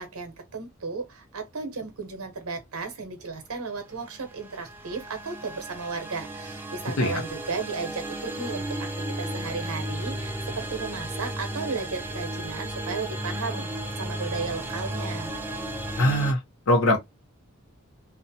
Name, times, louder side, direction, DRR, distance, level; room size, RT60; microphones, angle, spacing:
voice 1, 0.0-8.9 9.2-13.7 14.0-15.3, right 4 dB, 90° right, 0.8 m, -34 dB
sound 1, 4.1-16.3, right 1 dB, 10° right, 0.3 m, -34 dB
voice 2, 16.0-16.4 16.7-17.0, left 1 dB, 70° left, 0.7 m, -21 dB
2.5 x 2.0 x 2.7 m
head